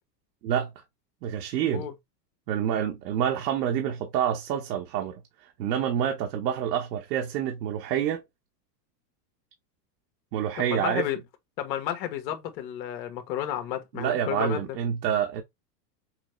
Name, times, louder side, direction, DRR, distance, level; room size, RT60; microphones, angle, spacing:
voice 1, 1.2-1.9 2.5-5.2 5.6-8.2 10.3-11.1 13.9-15.4, right 9 dB, 75° right, 1.2 m, -27 dB
voice 2, 10.6-11.2 11.6-14.8, left 11 dB, 80° left, 1.3 m, -32 dB
6.2 x 2.1 x 3.1 m
supercardioid pair, 140°, 50 cm